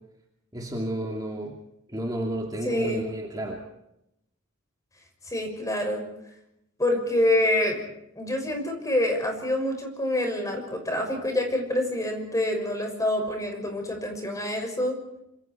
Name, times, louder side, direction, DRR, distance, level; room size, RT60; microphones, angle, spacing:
voice 1, 0.5-1.6 1.9-3.6, right 1 dB, 15° right, 0 dB, 2.6 m, -31 dB
voice 2, 2.6-3.1 5.2-6.0 6.8-7.8 8.2-15.0, left 1 dB, 15° left, 3 dB, 6.1 m, -26 dB
27.5 x 26.5 x 4.6 m, 0.83 s
head